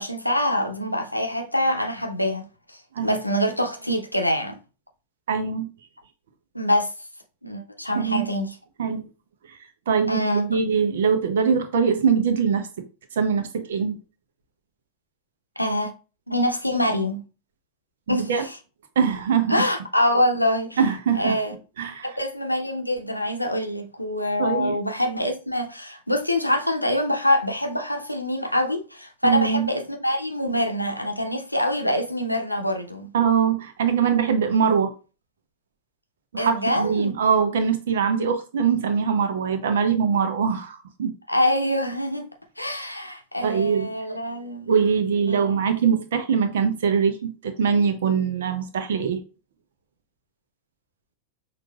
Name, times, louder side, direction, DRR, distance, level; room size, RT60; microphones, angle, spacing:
voice 1, 0.0-4.6 6.5-7.1 7.4-8.6 10.1-10.6 15.6-15.9 16.3-17.2 18.1-18.6 19.5-20.8 21.1-21.5 22.0-33.1 36.4-37.2 41.3-42.3 42.6-44.7 45.3-45.6, left 1 dB, 85° left, 0.6 m, -25 dB
voice 2, 5.3-5.7 7.9-8.2 8.8-9.0 9.9-10.2 10.5-12.7 13.2-14.0 18.1-18.4 19.0-19.6 20.8-21.4 21.8-22.1 24.4-24.8 29.2-29.7 33.1-34.9 36.3-41.1 43.4-43.9 44.7-49.2, right 6 dB, 60° right, 0.7 m, -22 dB
6.0 x 2.5 x 2.3 m
figure-of-eight pair, 90°, 0 cm